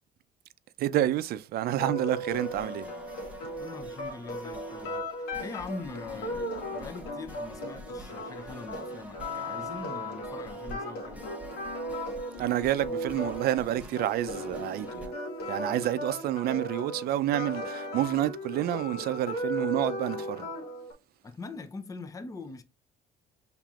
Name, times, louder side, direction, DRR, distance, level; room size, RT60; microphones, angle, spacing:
voice 1, 0.8-2.9 12.4-15.1 15.5-20.5, right 12 dB, 65° right, 0.5 m, -29 dB
sound 1, 1.8-20.9, equal, 85° left, 1.6 m, -36 dB
sound 2, 2.3-15.1, left 1 dB, 10° right, 0.9 m, -46 dB
voice 2, 3.6-11.2 21.2-22.6, left 3 dB, 20° left, 0.6 m, -42 dB
5.8 x 3.6 x 2.4 m
cardioid pair, 110°, 17 cm